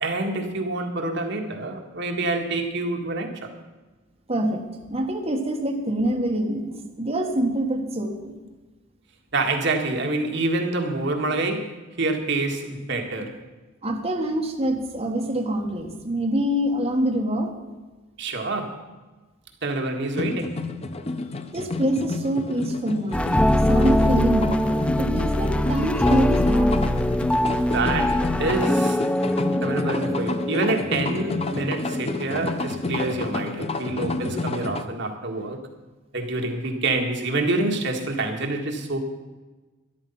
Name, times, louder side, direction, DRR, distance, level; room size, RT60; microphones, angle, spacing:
voice 1, 0.0-3.5 9.3-13.4 18.2-18.8 19.6-20.6 27.4-29.0 29.6-35.6 36.1-39.0, right 2 dB, 65° right, 3 dB, 1.7 m, -27 dB
voice 2, 4.3-4.6 4.9-8.3 13.8-17.5 21.5-27.0, right 1 dB, 35° right, 0 dB, 1.6 m, -25 dB
sound 1, 20.1-34.8, left 2 dB, 30° left, 0.7 m, -30 dB
sound 2, 23.1-33.5, left 1 dB, 5° left, 0.3 m, -24 dB
13.0 x 12.0 x 5.6 m, 1.2 s
head